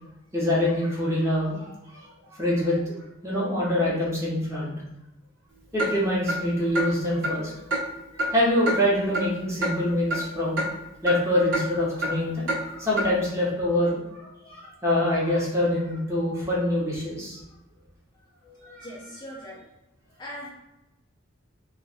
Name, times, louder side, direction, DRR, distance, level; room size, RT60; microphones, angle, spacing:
voice 1, 0.3-4.7 5.7-7.8 8.1-10.6 11.0-17.4 18.4-18.9, left 1 dB, 15° right, -7 dB, 0.9 m, -25 dB
Clock, 5.8-5.9 6.3-6.4 6.8-6.9 7.2-7.4 7.7-7.8 8.2-8.3 8.7-8.8 9.1-9.3 9.6-9.7 10.1-10.2 10.6-10.7 11.1-11.2 11.5-11.7 12.0-12.1 12.5-12.6 13.0-13.1, right 1 dB, 75° right, 0.9 m, -26 dB
voice 2, 18.8-19.6 20.2-20.5, equal, 20° left, -7 dB, 0.5 m, -39 dB
2.5 x 2.3 x 3.9 m, 0.97 s
head